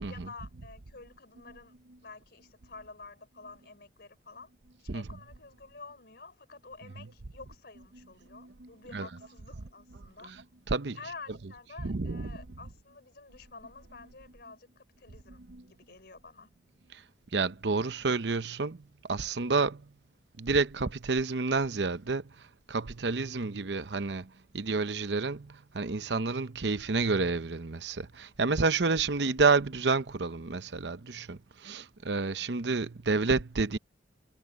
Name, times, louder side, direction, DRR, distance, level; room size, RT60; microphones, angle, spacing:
voice 1, 0.1-1.8 2.0-4.5 4.8-10.3 11.0-16.5, left 4 dB, 65° left, 3.9 m, -49 dB
voice 2, 8.3-9.1 10.7-11.0 11.8-12.3 15.5-15.6 16.9-17.0 17.3-18.8 19.1-19.8 20.4-22.2 22.7-33.8, right 4 dB, 75° right, 0.8 m, -29 dB
head